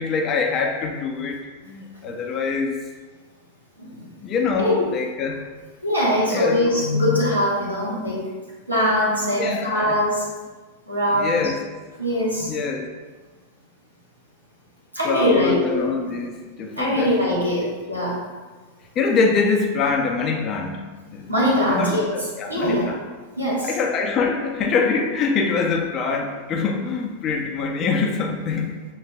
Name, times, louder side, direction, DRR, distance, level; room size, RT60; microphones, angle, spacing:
voice 1, 0.0-1.4 1.7-2.7 4.2-5.4 6.3-6.7 9.4-10.0 11.1-11.6 12.4-12.8 15.0-17.3 19.0-21.3 21.6-23.0 23.6-28.8, left 4 dB, 30° left, 2 dB, 0.6 m, -24 dB
voice 2, 5.8-8.2 8.7-10.3 10.9-11.5 12.0-12.5 14.9-15.8 16.8-18.2 21.3-22.0 22.5-22.8 23.4-23.7, left 1 dB, 85° right, -7 dB, 1.4 m, -22 dB
6.4 x 3.2 x 2.3 m, 1.3 s
figure-of-eight pair, 90°, 0 cm